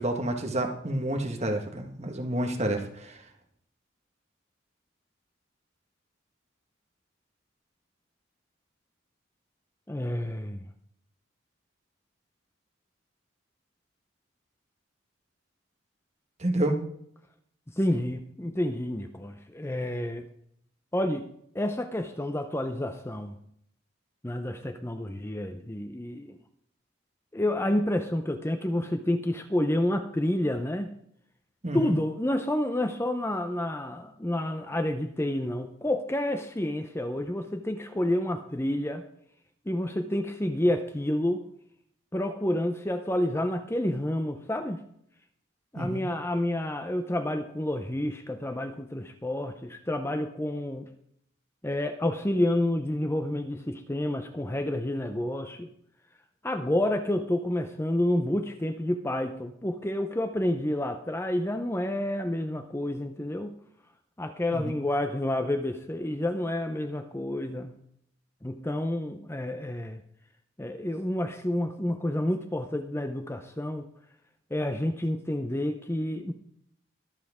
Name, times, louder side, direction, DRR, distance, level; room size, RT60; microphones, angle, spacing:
voice 1, 0.0-3.2 16.4-16.8 31.6-31.9 45.7-46.0 64.5-64.8, right 1 dB, 35° right, 4 dB, 1.6 m, -29 dB
voice 2, 9.9-10.7 17.7-20.3 20.9-23.3 24.2-26.4 27.3-30.9 31.7-39.1 39.7-41.5 42.1-44.8 45.7-50.9 51.6-55.7 56.4-63.5 64.2-67.8 68.4-70.0 70.6-73.9 74.5-76.3, left 1 dB, 15° left, 7 dB, 0.7 m, -29 dB
22.0 x 7.6 x 3.7 m, 0.69 s
head